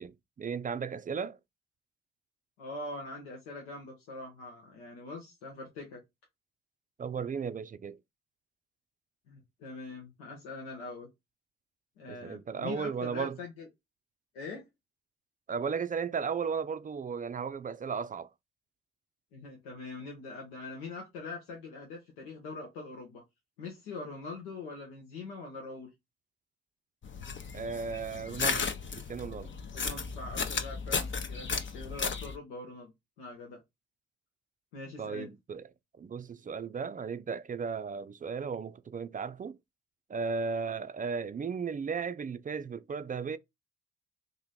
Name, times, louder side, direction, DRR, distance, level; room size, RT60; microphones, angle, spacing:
voice 1, 0.0-1.4 7.0-8.0 12.1-13.4 15.5-18.3 27.5-29.5 35.0-35.7 36.0-39.6 40.1-43.4, right 5 dB, 25° right, 0.4 m, -35 dB
voice 2, 2.6-6.0 9.3-11.1 12.0-13.7 14.3-14.6 19.3-23.2 23.6-25.9 29.7-32.9 33.2-33.6 34.7-35.3, left 3 dB, 90° left, 0.9 m, -43 dB
sound 1, 27.0-32.4, left 5 dB, 40° left, 0.8 m, -34 dB
3.0 x 2.6 x 4.0 m
hypercardioid pair, 50°, 31 cm